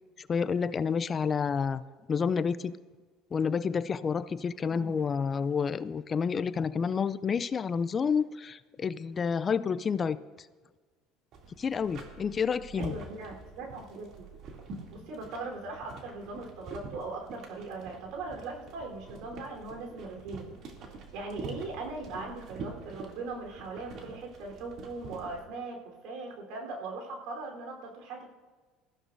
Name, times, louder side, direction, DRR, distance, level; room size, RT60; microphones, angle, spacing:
voice 1, 0.2-1.8 2.1-2.8 3.3-10.2 11.6-13.0, left 6 dB, 30° left, 16 dB, 0.4 m, -29 dB
voice 2, 4.6-4.9 12.8-14.3 14.9-20.6 21.1-28.3, right 3 dB, 70° right, 1 dB, 3.8 m, -40 dB
sound 1, 11.3-25.4, right 3 dB, 55° right, 2.7 m, -45 dB
20.5 x 15.0 x 2.7 m, 1.4 s
supercardioid pair, 95°, 0 cm